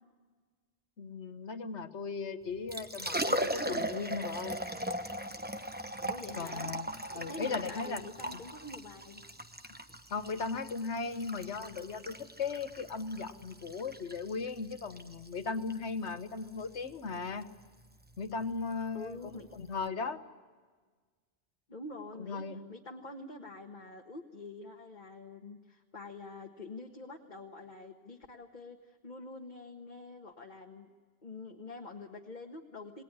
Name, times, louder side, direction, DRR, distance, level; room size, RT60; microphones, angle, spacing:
voice 1, 1.0-4.6 6.4-8.0 10.1-17.5 18.2-20.2 22.2-22.7, left 4 dB, 75° left, 10 dB, 1.5 m, -37 dB
Liquid, 2.5-19.9, right 1 dB, 10° right, 1.0 m, -39 dB
voice 2, 6.0-6.7 7.1-9.2 9.7-9.8 18.9-19.5 21.7-30.9 31.2-33.0, left 2 dB, 45° left, 2 dB, 1.6 m, -46 dB
28.0 x 20.0 x 9.7 m, 1.5 s
omnidirectional pair, 1.2 m